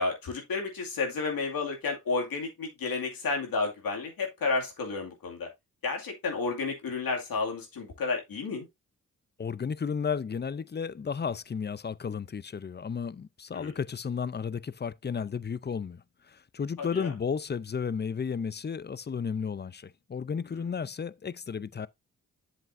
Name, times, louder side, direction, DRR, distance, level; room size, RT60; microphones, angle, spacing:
voice 1, 0.0-5.5 5.8-8.7 13.5-13.7 16.8-17.1, left 4 dB, 85° left, 2.4 m, -31 dB
voice 2, 9.4-16.0 16.3-21.9, left 6 dB, 30° left, 0.6 m, -33 dB
7.7 x 7.6 x 2.6 m
cardioid pair, 45°, 35 cm